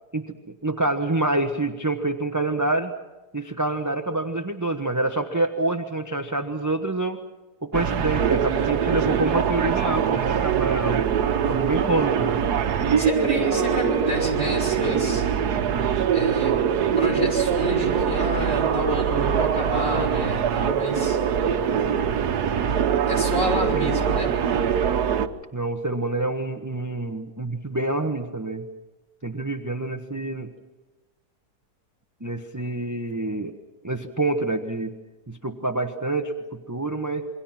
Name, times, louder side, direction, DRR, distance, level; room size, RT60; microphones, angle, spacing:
voice 1, 0.1-2.9 3.3-7.2 7.6-11.1 11.5-12.4 12.8-13.6 23.7-23.9 25.5-28.6 29.2-30.5 32.2-33.6 33.8-34.9 35.3-36.3 36.7-37.3, right 2 dB, 15° right, 6 dB, 1.0 m, -27 dB
sound 1, 7.7-25.3, right 8 dB, 75° right, 1.5 m, -23 dB
voice 2, 13.0-15.2 16.1-16.6 17.0-21.2 23.1-24.3, equal, 40° left, 0 dB, 5.1 m, -29 dB
28.0 x 23.0 x 6.0 m, 1.1 s
omnidirectional pair, 1.7 m